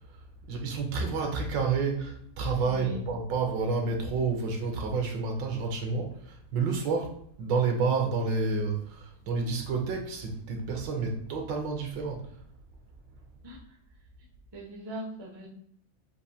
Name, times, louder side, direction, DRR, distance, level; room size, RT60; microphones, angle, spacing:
voice 1, 0.5-12.3, right 4 dB, 75° right, 2 dB, 1.4 m, -29 dB
voice 2, 2.6-3.0 9.4-9.5 13.4-13.6 14.5-15.5, equal, 35° right, -1 dB, 0.3 m, -40 dB
6.8 x 2.6 x 2.7 m, 0.68 s
omnidirectional pair, 2.1 m